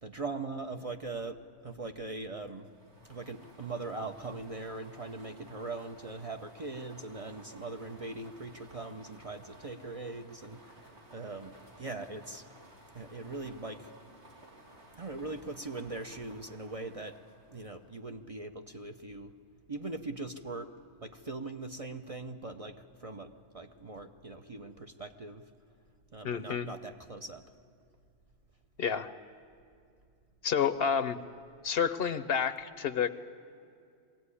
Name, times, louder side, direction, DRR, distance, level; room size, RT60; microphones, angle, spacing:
voice 1, 0.0-2.7 3.1-10.8 11.1-12.4 12.9-13.9 14.9-17.2 17.5-19.3 19.7-20.7 21.0-25.4 26.1-27.4, right 3 dB, 35° right, 5 dB, 0.7 m, -41 dB
sound 1, 2.6-18.0, right 1 dB, 75° right, 3.3 m, -56 dB
voice 2, 26.2-26.7 28.8-29.1 30.4-31.2 31.6-33.1, left 7 dB, 65° left, 13 dB, 0.9 m, -29 dB
21.5 x 16.5 x 9.7 m, 2.4 s
omnidirectional pair, 1.2 m